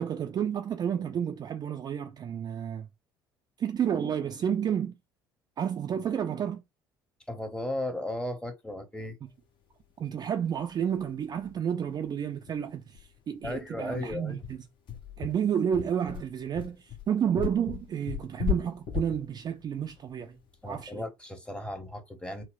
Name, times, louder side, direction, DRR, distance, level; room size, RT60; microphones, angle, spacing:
voice 1, 0.0-2.9 3.6-4.9 5.6-6.6 10.0-14.6 15.2-20.4 20.6-21.1, right 8 dB, 35° right, 0.4 m, -30 dB
voice 2, 7.3-9.2 13.4-14.4 20.6-22.4, left 1 dB, 10° left, 1.0 m, -35 dB
sound 1, 10.5-10.6 10.9-11.0 11.4-11.5 11.9-12.0 12.5-20.9, left 9 dB, 40° left, 0.9 m, -36 dB
4.1 x 2.0 x 2.5 m
figure-of-eight pair, 60°, 12 cm